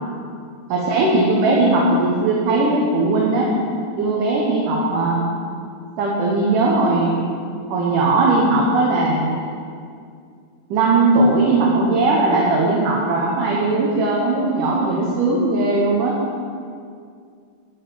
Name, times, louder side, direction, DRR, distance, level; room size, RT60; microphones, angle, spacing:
voice 1, 0.7-3.5 3.9-5.2 6.0-7.2 7.7-9.4 10.7-16.2, right 2 dB, 65° right, -3 dB, 2.7 m, -18 dB
14.0 x 5.7 x 8.8 m, 2.2 s
omnidirectional pair, 4.4 m